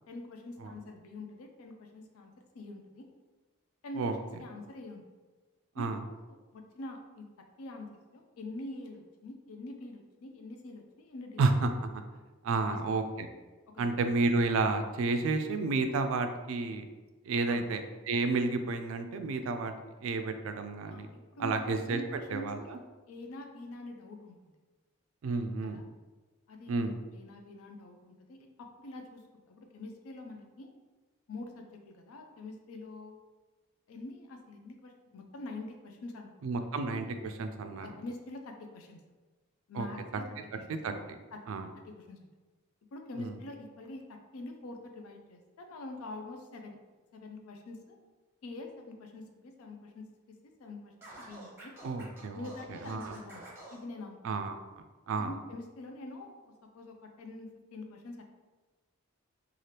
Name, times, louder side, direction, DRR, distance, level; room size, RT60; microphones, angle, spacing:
voice 1, 0.1-3.1 3.8-5.0 5.8-7.2 7.6-11.5 12.6-12.8 13.7-13.9 17.5-17.6 20.9-24.4 25.7-25.8 26.5-30.7 31.3-33.2 33.9-36.6 37.8-39.0 39.7-40.6 41.3-41.4 41.8-42.3 42.9-46.8 47.1-48.0 48.4-51.8 52.3-53.4 53.7-54.4 55.2-58.3, left 2 dB, 80° left, 4 dB, 0.4 m, -45 dB
voice 2, 11.4-12.0 12.4-13.3 13.8-16.8 17.3-17.8 18.1-19.7 20.0-21.1 21.4-22.0 22.3-22.8 25.2-25.8 26.7-26.9 36.4-37.9 39.8-39.9 40.8-40.9 41.5-41.7 43.2-43.3 51.8-52.5 52.8-53.1 54.2-54.6 55.1-55.3, right 3 dB, 70° right, 7 dB, 0.3 m, -31 dB
Scratching (performance technique), 51.0-53.8, right 2 dB, 10° right, 0.7 m, -49 dB
2.8 x 2.4 x 3.2 m, 1.3 s
head